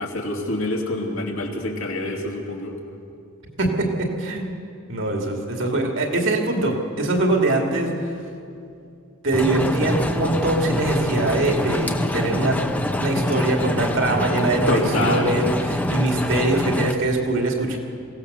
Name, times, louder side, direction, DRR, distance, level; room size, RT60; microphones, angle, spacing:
voice 1, 0.0-2.7 14.7-15.3, left 2 dB, 65° left, 0 dB, 2.8 m, -26 dB
voice 2, 3.6-4.5 4.9-8.2 9.2-12.6 12.9-17.8, right 2 dB, 60° right, 2 dB, 2.5 m, -23 dB
sound 1, 9.3-16.9, left 1 dB, 5° left, 0.8 m, -25 dB
23.0 x 17.0 x 6.8 m, 2.5 s
head